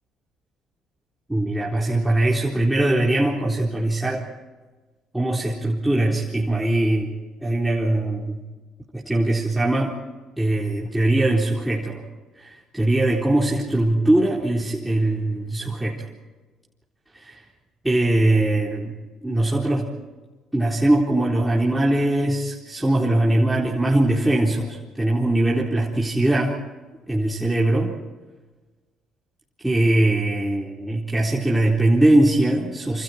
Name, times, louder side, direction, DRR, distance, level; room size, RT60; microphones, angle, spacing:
voice 1, 1.3-4.3 5.1-7.1 7.4-8.4 8.9-10.0 10.4-12.0 12.4-16.1 17.1-17.4 17.8-18.9 19.2-19.9 20.5-26.6 27.1-27.9 29.6-33.0, right 1 dB, 10° right, -4 dB, 4.1 m, -21 dB
27.5 x 26.5 x 4.5 m, 1.3 s
hypercardioid pair, 60°, 0 cm